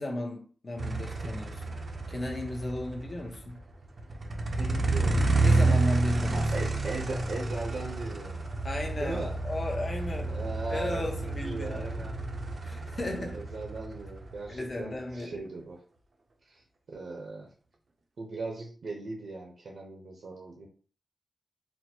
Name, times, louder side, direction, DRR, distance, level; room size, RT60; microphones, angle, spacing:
voice 1, 0.0-1.8 2.1-3.6 5.4-6.5 8.6-10.4 10.7-11.9 12.6-13.4 14.5-15.5, left 2 dB, 30° left, 0.8 m, -35 dB
sound 1, 0.8-15.4, right 2 dB, 45° right, 0.6 m, -30 dB
voice 2, 4.6-5.2 6.3-8.5 9.0-9.4 10.3-12.1 12.9-15.8 16.4-17.5 18.2-20.7, right 3 dB, 70° right, 0.9 m, -38 dB
4.4 x 2.1 x 4.3 m
wide cardioid pair, 165°, 0 cm